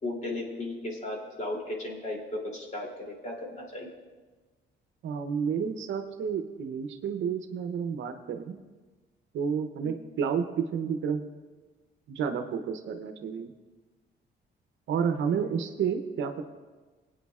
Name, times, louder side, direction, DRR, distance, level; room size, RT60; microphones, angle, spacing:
voice 1, 0.0-3.9 9.8-10.0 15.3-15.6, left 2 dB, 35° left, -1 dB, 2.9 m, -36 dB
voice 2, 5.0-8.6 9.3-11.2 12.1-13.5 14.9-16.4, right 7 dB, 75° right, 8 dB, 0.8 m, -30 dB
19.0 x 9.1 x 2.4 m, 1.3 s
cardioid pair, 90°, 20 cm